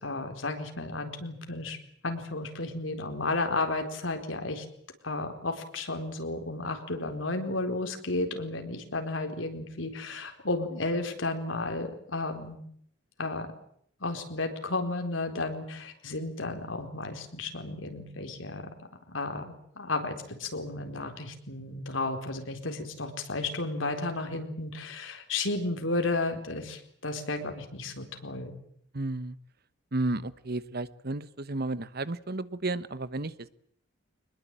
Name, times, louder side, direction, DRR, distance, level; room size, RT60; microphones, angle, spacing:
voice 1, 0.0-1.8 2.0-4.6 5.0-12.6 13.2-13.5 14.0-18.7 19.1-19.5 19.8-28.6, left 2 dB, 85° left, 5 dB, 4.2 m, -33 dB
voice 2, 28.9-29.4 29.9-33.5, right 2 dB, 55° right, 15 dB, 1.1 m, -32 dB
24.5 x 21.0 x 8.9 m, 0.66 s
head